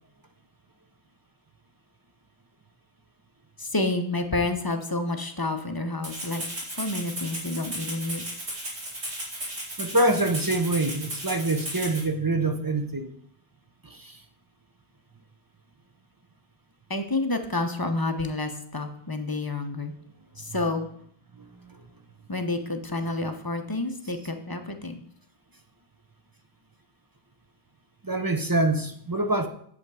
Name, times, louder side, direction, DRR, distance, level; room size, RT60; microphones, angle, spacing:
voice 1, 3.6-6.4 6.7-8.3 16.9-19.9 20.4-20.9 22.3-25.0, left 2 dB, 20° left, 7 dB, 0.8 m, -29 dB
Rattle (instrument), 6.0-12.0, right 1 dB, 75° right, 2.8 m, -35 dB
voice 2, 9.8-13.1 13.8-14.2 21.4-21.8 28.0-29.5, right 2 dB, 25° right, 6 dB, 0.6 m, -25 dB
8.3 x 7.3 x 4.8 m, 0.64 s
omnidirectional pair, 1.1 m